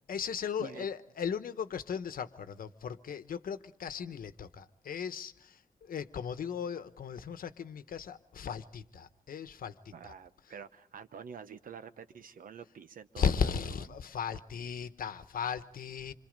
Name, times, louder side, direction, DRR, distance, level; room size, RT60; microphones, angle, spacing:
voice 1, 0.1-10.1 13.2-16.1, left 7 dB, 85° left, 1.1 m, -36 dB
voice 2, 9.9-13.5 13.8-13.9, right 6 dB, 75° right, 1.0 m, -47 dB
27.0 x 26.0 x 5.2 m
wide cardioid pair, 175°, 14 cm